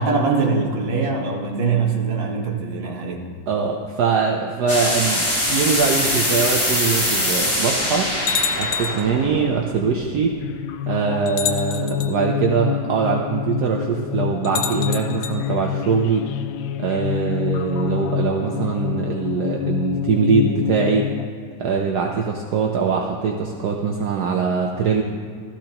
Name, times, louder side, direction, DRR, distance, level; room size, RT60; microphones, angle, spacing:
voice 1, 0.0-3.3, right 4 dB, 35° right, 0 dB, 1.4 m, -22 dB
voice 2, 3.5-8.1 8.6-10.3 10.9-16.3 16.8-21.1 21.6-25.0, right 5 dB, 65° right, 0 dB, 1.2 m, -22 dB
sound 1, 4.7-10.4, left 1 dB, 30° left, 2.5 m, -23 dB
sound 2, 8.3-9.1 10.3-10.4 11.3-12.1 14.4-15.4, left 7 dB, 65° left, 0.9 m, -27 dB
sound 3, 10.4-21.3, left 9 dB, 80° left, 1.3 m, -27 dB
16.5 x 13.5 x 2.9 m, 2.1 s
omnidirectional pair, 2.1 m